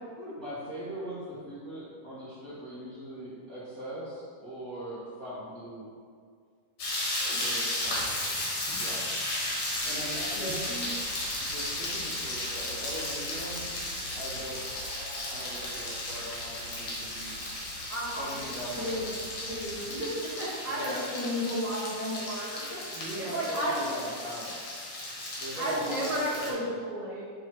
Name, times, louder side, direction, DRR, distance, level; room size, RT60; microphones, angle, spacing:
voice 1, 0.4-5.9 7.4-8.1 8.8-9.1 9.8-10.9 11.4-13.7 14.1-14.9 15.3-17.3 18.1-19.2 20.7-21.1 22.9-24.8 25.4-26.8, right 1 dB, 50° right, -10 dB, 1.1 m, -40 dB
sound 1, 6.8-26.5, left 1 dB, 55° left, 2.0 m, -35 dB
sound 2, 9.7-20.1, right 1 dB, 40° left, 1.4 m, -48 dB
voice 2, 10.1-10.5 17.9-18.5 18.7-19.1 19.5-20.1 20.4-22.8 23.2-23.8 25.5-27.2, equal, 75° left, -10 dB, 0.3 m, -33 dB
7.5 x 3.8 x 4.5 m, 2.1 s
omnidirectional pair, 3.7 m